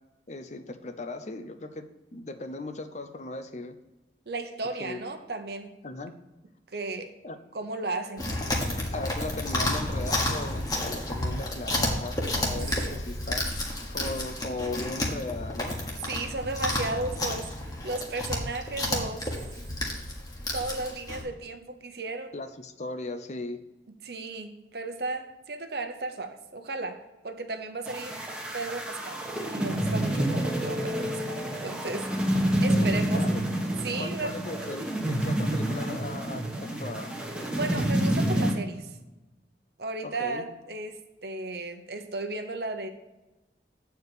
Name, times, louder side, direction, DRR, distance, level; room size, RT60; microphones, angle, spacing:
voice 1, 0.3-3.8 4.8-5.0 5.8-6.1 7.2-7.4 8.9-15.8 22.3-23.6 32.7-33.4 34.0-37.1 40.0-40.4, left 2 dB, 40° left, 8 dB, 0.6 m, -37 dB
voice 2, 4.3-5.7 6.7-7.1 7.5-8.3 12.5-12.9 16.1-17.5 17.8-19.3 20.5-22.3 24.0-28.2 28.5-29.2 29.5-32.1 32.6-33.3 33.8-34.4 37.5-38.9 39.8-42.9, right 2 dB, 60° right, 6 dB, 0.9 m, -34 dB
Chewing mastication, 8.2-21.2, left 1 dB, 20° left, 1.4 m, -31 dB
sound 1, 27.9-38.5, right 1 dB, 5° right, 1.2 m, -28 dB
8.2 x 4.7 x 6.8 m, 1.0 s
head